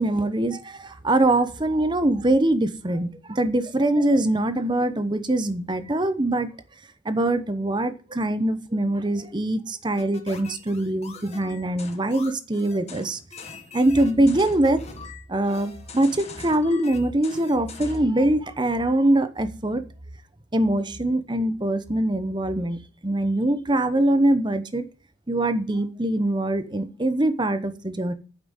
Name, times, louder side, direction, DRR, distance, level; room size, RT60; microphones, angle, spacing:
voice 1, 0.0-6.5 7.0-13.2 13.7-14.8 15.3-19.8 20.5-24.9 25.3-28.1, right 1 dB, 20° right, 0.8 m, -23 dB
sound 1, 10.0-18.1, left 4 dB, 30° left, 1.4 m, -43 dB
9.0 x 5.9 x 7.9 m
head